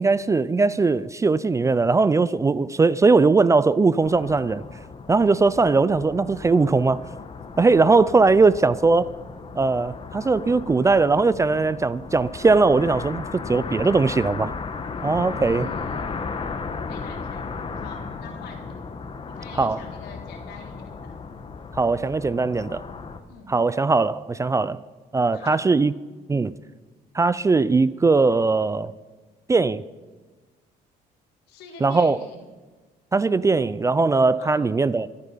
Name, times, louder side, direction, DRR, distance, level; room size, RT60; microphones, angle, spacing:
voice 1, 0.0-4.6 5.1-7.0 7.6-9.1 9.6-14.5 15.0-15.7 19.6-19.8 21.7-22.8 23.5-24.8 25.1-25.9 26.3-26.5 27.1-28.9 29.5-29.8 31.8-32.2 33.1-35.1, right 3 dB, 20° right, 0.4 m, -20 dB
sound 1, 4.0-23.2, left 4 dB, 30° left, 1.3 m, -35 dB
voice 2, 15.2-16.3 16.9-18.8 19.3-21.1 23.3-23.5 25.3-25.6 31.5-32.4 34.4-34.7, left 5 dB, 85° left, 3.7 m, -44 dB
24.5 x 9.1 x 5.7 m
cardioid pair, 110°, 17 cm